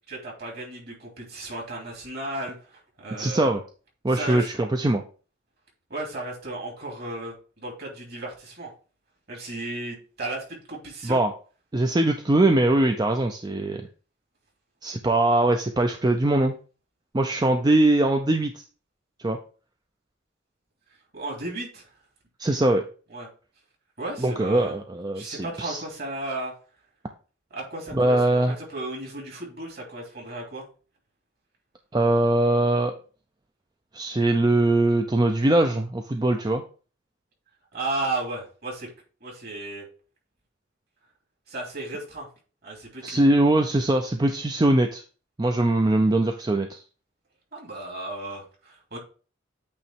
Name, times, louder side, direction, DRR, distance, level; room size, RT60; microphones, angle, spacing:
voice 1, 0.1-3.5 4.1-4.5 5.9-8.7 9.3-11.2 21.1-21.9 22.4-22.8 23.1-23.3 24.0-24.7 25.1-26.5 27.5-30.7 37.7-38.9 39.2-39.9 41.5-42.3 42.6-43.2 47.5-49.0, right 2 dB, 50° right, -1 dB, 2.8 m, -34 dB
voice 2, 3.2-3.6 4.0-5.0 11.0-11.3 11.7-13.8 14.8-16.5 17.1-18.6 19.2-19.4 22.4-22.8 24.2-25.8 27.9-28.6 31.9-32.9 33.9-36.6 43.0-45.0 45.4-46.8, right 1 dB, 20° right, 4 dB, 0.5 m, -22 dB
8.7 x 3.0 x 4.5 m, 0.37 s
head